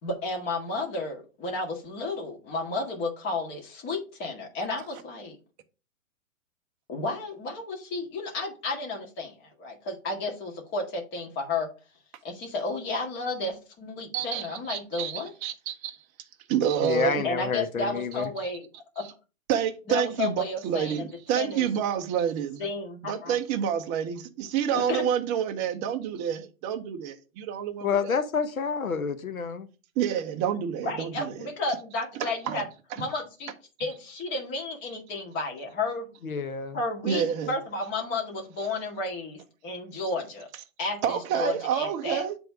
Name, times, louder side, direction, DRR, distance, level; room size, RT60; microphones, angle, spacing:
voice 1, 0.0-5.4 6.9-11.7 12.2-15.3 17.2-18.7 19.0-19.1 19.9-20.9 21.3-21.6 22.6-23.3 24.9-25.0 30.8-32.6 33.0-33.5 33.8-36.1 36.7-40.5 40.8-42.2, left 3 dB, 25° left, 1.9 m, -32 dB
voice 2, 14.1-17.3 18.1-18.5 19.0-19.1 19.5-22.7 23.0-28.2 30.0-31.5 32.1-32.6 32.9-33.1 37.0-37.6 40.5-40.6 41.0-42.4, right 9 dB, 20° right, 0.5 m, -29 dB
voice 3, 16.8-18.3 27.8-29.7 36.2-36.8, left 6 dB, 85° left, 1.1 m, -28 dB
7.8 x 3.5 x 4.6 m
hypercardioid pair, 130°, 41 cm